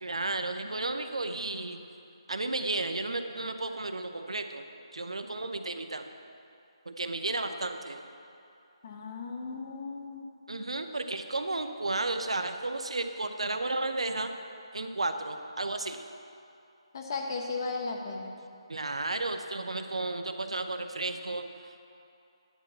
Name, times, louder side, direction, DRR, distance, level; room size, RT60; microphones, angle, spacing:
voice 1, 0.0-1.8 2.3-4.6 4.9-6.1 6.9-8.0 10.5-14.3 14.7-16.0 18.7-21.9, right 2 dB, 85° right, 7 dB, 0.7 m, -33 dB
voice 2, 8.8-10.3 16.9-18.3, left 4 dB, 40° left, 1 dB, 1.2 m, -36 dB
10.0 x 4.5 x 7.8 m, 2.7 s
figure-of-eight pair, 160°, 3 cm